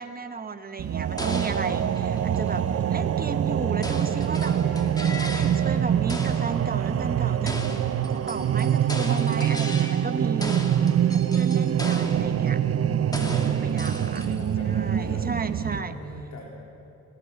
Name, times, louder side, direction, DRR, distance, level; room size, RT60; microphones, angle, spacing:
voice 1, 0.0-2.6 2.9-7.6 8.1-10.6 11.0-12.6 13.3-14.3 14.7-16.0, right 4 dB, 30° right, 9 dB, 1.4 m, -34 dB
sound 1, 0.8-15.8, right 9 dB, 50° right, 0.8 m, -24 dB
sound 2, 1.2-2.6 3.8-5.8 6.1-6.6 7.5-10.1 10.4-12.4 13.1-14.5, left 1 dB, 10° left, 2.5 m, -37 dB
voice 2, 13.7-16.5, left 2 dB, 70° left, -2 dB, 3.6 m, -41 dB
26.0 x 18.5 x 6.8 m, 3.0 s
cardioid pair, 90°, 30 cm